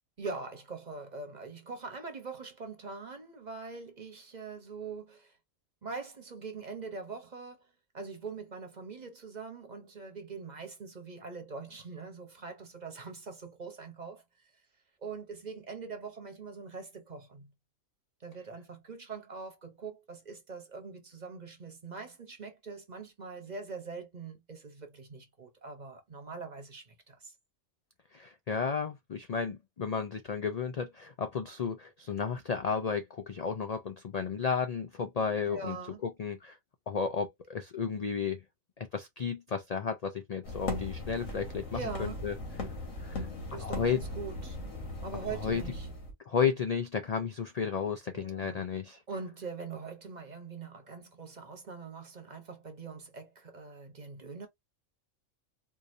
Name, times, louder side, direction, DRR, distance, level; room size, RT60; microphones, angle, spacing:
voice 1, 0.2-5.4 5.8-14.2 15.0-17.5 18.2-27.3 35.4-36.0 41.7-42.3 43.5-44.6 45.0-45.9 48.1-48.7 49.1-54.5, right 4 dB, 35° right, 1.0 m, -43 dB
voice 2, 28.1-35.8 36.0-36.5 36.9-38.4 38.8-42.3 43.0-43.2 43.6-44.0 45.4-45.6 46.3-49.0, left 6 dB, 65° left, 0.4 m, -33 dB
sound 1, 40.4-46.1, left 2 dB, 85° left, 1.9 m, -38 dB
4.7 x 2.6 x 2.6 m
omnidirectional pair, 1.4 m